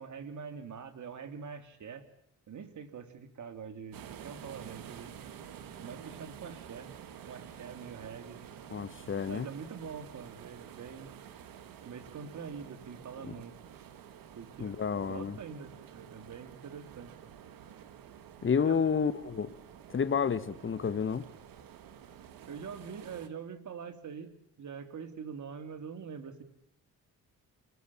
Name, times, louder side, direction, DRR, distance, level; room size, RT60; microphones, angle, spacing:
voice 1, 0.0-2.0 2.5-5.1 5.8-6.9 7.3-8.5 9.2-11.1 11.8-13.6 14.3-17.3 18.6-18.8 22.5-26.4, right 6 dB, 55° right, 3.2 m, -44 dB
sound 1, 3.9-23.3, right 9 dB, 75° right, 2.3 m, -50 dB
voice 2, 8.7-9.5 13.3-13.4 14.6-15.4 18.4-19.5 19.9-21.3, left 6 dB, 35° left, 1.4 m, -30 dB
28.5 x 20.5 x 7.3 m
cardioid pair, 75°, 35 cm